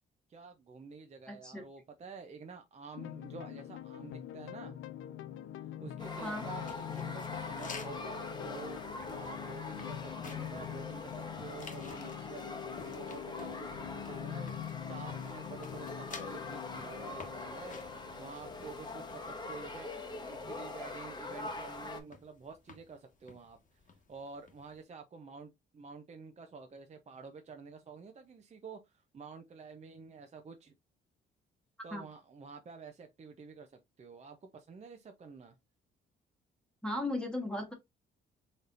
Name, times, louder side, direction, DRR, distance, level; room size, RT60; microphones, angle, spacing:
voice 1, 0.3-4.7 5.8-14.5 14.9-17.8 18.2-30.7 31.8-35.6, right 4 dB, 35° right, 0.7 m, -49 dB
voice 2, 1.3-1.6 6.2-6.5 31.9-32.0 36.8-37.7, left 1 dB, 5° left, 1.2 m, -36 dB
sound 1, 2.9-19.9, left 11 dB, 80° left, 0.4 m, -44 dB
sound 2, 6.0-22.0, left 2 dB, 20° left, 1.0 m, -43 dB
sound 3, 6.6-24.8, left 5 dB, 40° left, 1.2 m, -54 dB
4.2 x 3.4 x 2.5 m
cardioid pair, 90°, 20 cm